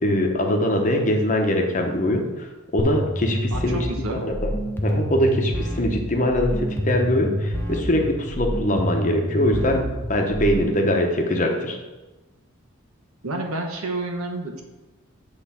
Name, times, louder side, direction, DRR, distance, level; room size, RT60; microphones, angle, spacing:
voice 1, 0.0-3.8 4.1-4.3 4.8-9.8 10.1-11.8, left 1 dB, 35° left, 2 dB, 0.8 m, -22 dB
sound 1, 2.8-10.8, equal, 10° left, 0.5 m, -28 dB
voice 2, 3.5-4.2 13.2-14.6, right 2 dB, 85° right, 2 dB, 1.1 m, -29 dB
8.4 x 3.2 x 5.7 m, 1.1 s
head